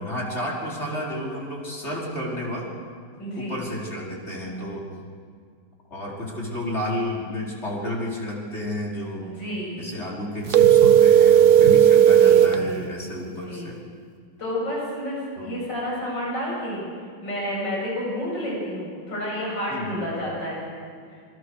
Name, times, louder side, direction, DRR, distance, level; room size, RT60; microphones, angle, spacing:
voice 1, 0.0-2.7 3.4-4.9 5.9-9.3 9.8-13.8 15.4-15.6 19.7-20.0, left 1 dB, 35° left, -3 dB, 5.2 m, -31 dB
voice 2, 3.2-3.6 9.2-9.9 12.0-12.9 13.3-13.7 14.4-16.9 17.2-20.7, equal, 65° left, -4 dB, 8.7 m, -30 dB
sound 1, 10.5-12.6, right 9 dB, 60° right, 1.3 m, -14 dB
27.0 x 23.5 x 6.5 m, 2.1 s
omnidirectional pair, 2.1 m